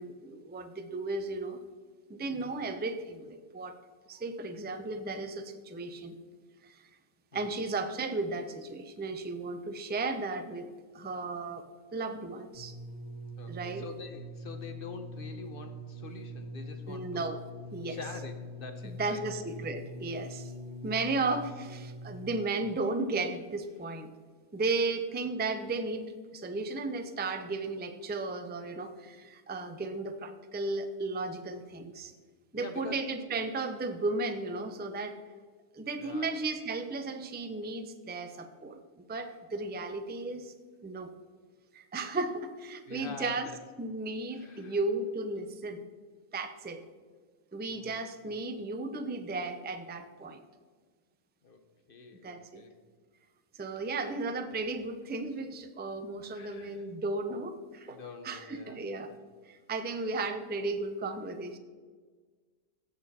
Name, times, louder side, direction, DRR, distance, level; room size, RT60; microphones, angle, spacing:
voice 1, 0.0-1.6 2.1-3.8 4.1-6.2 6.6-6.8 7.3-11.6 11.9-12.7 13.5-13.8 16.9-17.4 17.7-18.0 19.0-20.5 20.8-24.1 24.5-32.1 32.5-35.2 35.7-38.8 39.1-40.5 40.8-41.1 41.7-43.5 43.8-45.8 46.3-46.8 47.5-50.4 52.2-52.6 53.6-58.0 58.2-59.1 59.5-61.6, right 3 dB, 15° right, 8 dB, 0.4 m, -35 dB
voice 2, 2.3-2.7 7.3-7.6 13.4-17.3 17.8-19.2 21.1-21.2 32.5-33.0 36.0-36.4 42.9-43.6 44.3-44.8 47.7-48.3 51.4-51.6 51.9-52.8 56.3-56.9 57.9-58.8 59.1-59.2, left 4 dB, 50° left, 7 dB, 1.0 m, -46 dB
sound 1, 12.5-22.7 23.5-23.6, equal, 85° right, 2.2 m, -43 dB
16.5 x 6.5 x 4.2 m, 1.5 s
omnidirectional pair, 1.3 m